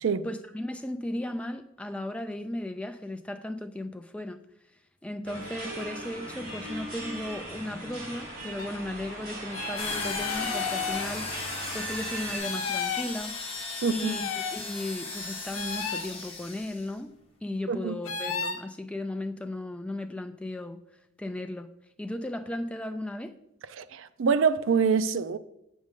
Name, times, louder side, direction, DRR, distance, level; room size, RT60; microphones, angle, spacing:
voice 1, 0.2-4.4 5.0-11.3 11.7-13.4 13.9-17.1 17.4-20.8 21.2-21.7 22.0-23.3, left 1 dB, 5° left, 0.3 m, -36 dB
sound 1, 5.2-12.4, right 1 dB, 40° right, 2.5 m, -39 dB
sound 2, 8.6-8.7 9.5-11.1 12.4-13.1 14.0-14.6 15.5-16.1 18.0-18.6, left 6 dB, 85° left, 0.7 m, -33 dB
sound 3, 9.8-16.9, left 3 dB, 25° left, 1.3 m, -37 dB
voice 2, 13.8-14.1 17.7-17.9 23.8-25.4, right 5 dB, 65° right, 0.4 m, -25 dB
7.3 x 6.2 x 3.7 m
head